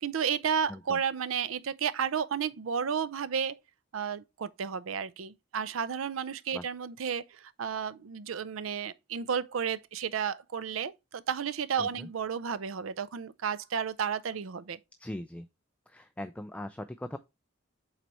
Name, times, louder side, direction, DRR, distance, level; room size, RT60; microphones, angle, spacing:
voice 1, 0.0-3.6 3.9-14.8, right 7 dB, 80° right, 0.5 m, -32 dB
voice 2, 15.0-15.5 15.9-17.2, left 1 dB, 5° left, 0.3 m, -40 dB
7.6 x 4.1 x 3.0 m
head